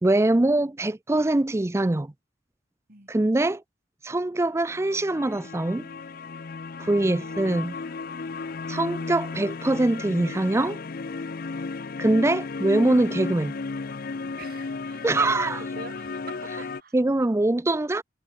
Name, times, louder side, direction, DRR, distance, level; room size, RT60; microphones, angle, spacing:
voice 1, 0.0-2.1 3.1-3.6 4.0-5.9 6.8-7.7 8.7-10.8 12.0-13.5 15.0-15.6 16.9-18.0, right 2 dB, 15° right, 0.4 m, -23 dB
sound 1, 4.6-16.8, left 4 dB, 45° left, 0.5 m, -34 dB
voice 2, 6.7-7.7 14.4-16.9, right 3 dB, 45° right, 4.7 m, -44 dB
head